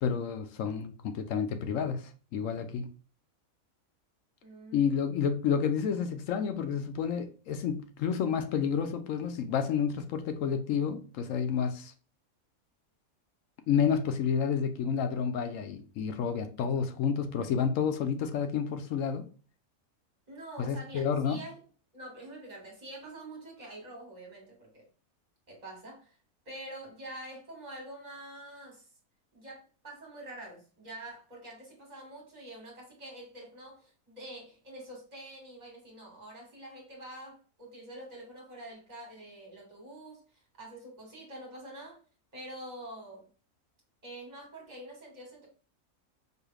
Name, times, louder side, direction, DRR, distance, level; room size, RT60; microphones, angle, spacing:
voice 1, 0.0-2.9 4.7-11.9 13.7-19.3 20.6-21.4, left 7 dB, 70° left, 0.9 m, -30 dB
voice 2, 4.4-5.1 20.3-21.6 21.9-24.9 25.5-26.2 26.5-28.9 29.3-42.0 42.3-43.3 44.0-45.5, right 1 dB, 30° right, 1.8 m, -46 dB
4.6 x 3.2 x 2.3 m
omnidirectional pair, 1.5 m